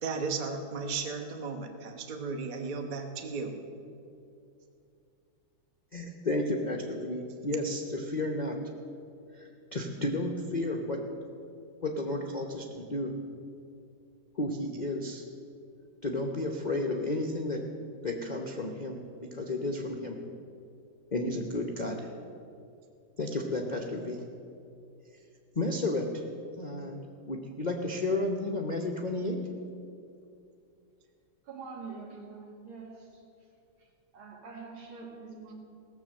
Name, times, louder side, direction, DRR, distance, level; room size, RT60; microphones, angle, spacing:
voice 1, 0.0-3.6, right 4 dB, 35° right, 4 dB, 0.9 m, -35 dB
voice 2, 5.9-8.6 9.3-11.0 11.8-13.1 14.4-15.2 16.0-17.6 18.0-19.0 19.3-20.2 21.1-22.1 23.2-24.2 25.5-26.2 26.6-29.4, left 2 dB, 50° left, 2 dB, 0.5 m, -32 dB
voice 3, 31.5-33.2 34.1-35.5, right 4 dB, 80° right, 0 dB, 2.7 m, -44 dB
17.0 x 6.9 x 7.5 m, 2.6 s
omnidirectional pair, 2.2 m